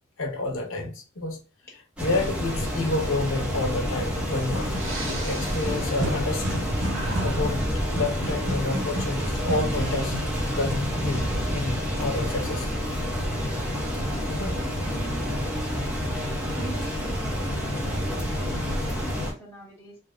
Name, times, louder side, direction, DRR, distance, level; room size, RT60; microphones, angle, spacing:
voice 1, 0.2-1.4 2.0-4.7 5.0-6.7 7.2-7.6 7.9-10.2 10.5-12.7 14.3-14.5, left 2 dB, 90° left, 3 dB, 0.9 m, -29 dB
sound 1, 2.0-19.3, equal, 5° right, 0.8 m, -28 dB
sound 2, 4.3-10.4, right 1 dB, 70° right, 0.7 m, -34 dB
Breathing, 4.6-6.6 6.9-8.0, right 1 dB, 30° right, 0.9 m, -36 dB
voice 2, 13.9-14.2 14.8-15.2 16.5-20.0, right 2 dB, 15° left, -4 dB, 1.2 m, -43 dB
3.5 x 2.2 x 2.4 m, 0.37 s
head